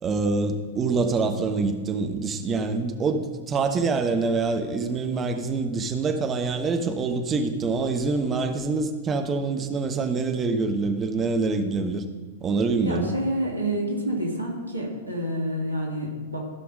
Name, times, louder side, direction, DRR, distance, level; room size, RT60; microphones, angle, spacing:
voice 1, 0.0-12.0 12.4-13.1, right 4 dB, 20° right, 5 dB, 1.1 m, -25 dB
voice 2, 12.8-16.4, right 1 dB, 85° right, -1 dB, 2.4 m, -28 dB
15.5 x 5.9 x 5.1 m, 1.4 s
figure-of-eight pair, 100°, 0 cm